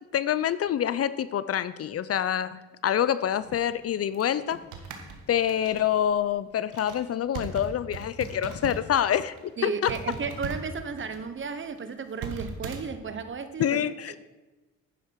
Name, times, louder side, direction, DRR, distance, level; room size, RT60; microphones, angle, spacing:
voice 1, 0.1-4.6 5.3-9.9 13.6-14.1, left 10 dB, 50° left, 16 dB, 0.6 m, -26 dB
sound 1, 3.3-9.0 9.3-9.5 9.9-12.8, right 4 dB, 90° right, 1.6 m, -39 dB
voice 2, 9.6-13.7 14.1-14.2, right 5 dB, 40° right, 10 dB, 1.1 m, -34 dB
11.0 x 10.0 x 4.7 m, 1.1 s
cardioid pair, 90°, 30 cm